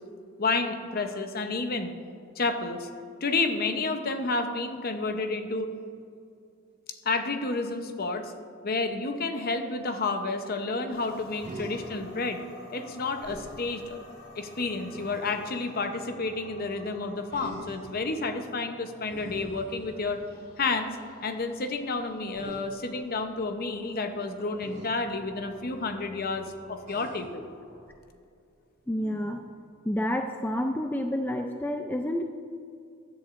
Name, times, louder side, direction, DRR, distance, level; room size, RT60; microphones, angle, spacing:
voice 1, 0.4-1.9 2.4-2.9 3.2-5.7 7.0-8.3 8.6-12.4 12.7-14.0 14.4-20.2 20.6-21.0 21.2-27.5, left 3 dB, 45° left, 7 dB, 0.8 m, -30 dB
sound 1, 10.9-27.9, left 1 dB, 85° left, 2.3 m, -51 dB
Human voice, 11.4-12.0 13.2-13.6 14.9-15.6 17.3-17.9 19.0-20.3 22.3-22.6 24.6-24.9 26.8-27.4 28.9-29.5, right 1 dB, 35° right, 2.2 m, -44 dB
voice 2, 28.9-29.4 29.8-32.2, equal, 10° left, 4 dB, 0.3 m, -29 dB
15.5 x 10.5 x 2.5 m, 2.5 s
head